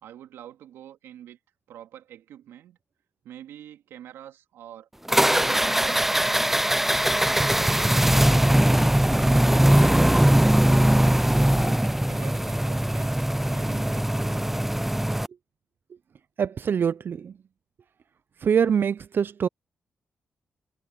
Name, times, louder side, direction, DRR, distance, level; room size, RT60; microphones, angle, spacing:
voice 1, 0.0-1.4 1.7-2.8 3.2-4.9 5.3-6.3 6.8-8.4 9.0-11.1 11.5-14.7, right 11 dB, 85° right, 3.0 m, -45 dB
sound 1, 5.1-15.3, right 1 dB, 5° right, 0.3 m, -21 dB
voice 2, 16.4-17.3 18.4-19.5, right 7 dB, 60° right, 0.5 m, -24 dB
supercardioid pair, 45°, 4 cm